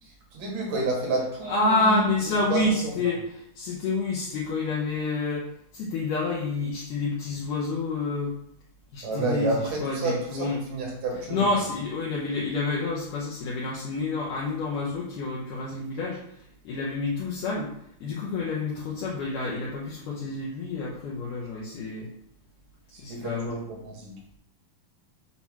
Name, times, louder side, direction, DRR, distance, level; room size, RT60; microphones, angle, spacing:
voice 1, 0.0-2.1 2.5-2.8 9.0-11.5 22.9-24.4, right 2 dB, 60° right, -1 dB, 2.7 m, -30 dB
voice 2, 1.5-3.2 3.6-8.4 8.9-10.6 11.3-22.1 23.0-23.6, left 3 dB, 70° left, -5 dB, 2.3 m, -28 dB
7.3 x 2.9 x 6.0 m, 0.71 s
omnidirectional pair, 4.4 m